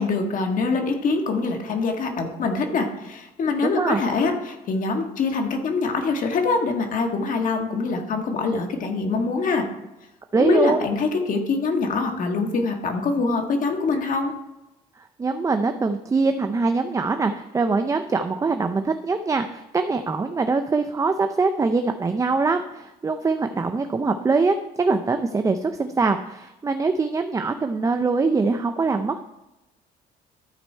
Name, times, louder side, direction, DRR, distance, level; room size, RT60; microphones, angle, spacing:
voice 1, 0.0-9.6 10.4-14.3, left 4 dB, 50° left, 3 dB, 1.6 m, -24 dB
voice 2, 3.6-4.0 10.3-10.8 15.0-29.2, right 4 dB, 20° right, 7 dB, 0.5 m, -23 dB
13.0 x 4.4 x 4.4 m, 0.97 s
cardioid pair, 110°, 17 cm